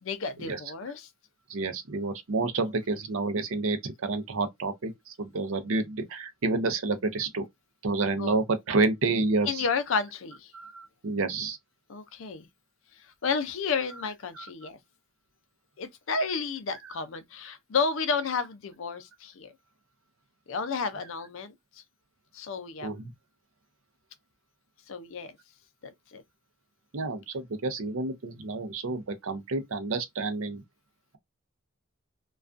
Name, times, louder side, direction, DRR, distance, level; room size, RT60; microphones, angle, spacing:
voice 1, 0.0-1.1 8.2-8.4 9.5-10.5 11.9-12.5 13.2-14.8 15.8-19.5 20.5-21.8 22.3-22.9 24.9-25.3 25.8-26.2, left 5 dB, 60° left, 0.5 m, -31 dB
voice 2, 1.5-7.4 7.8-9.7 10.5-11.6 14.4-14.5 22.8-23.1 26.9-30.6, right 3 dB, 65° right, 0.5 m, -29 dB
2.3 x 2.3 x 2.4 m
head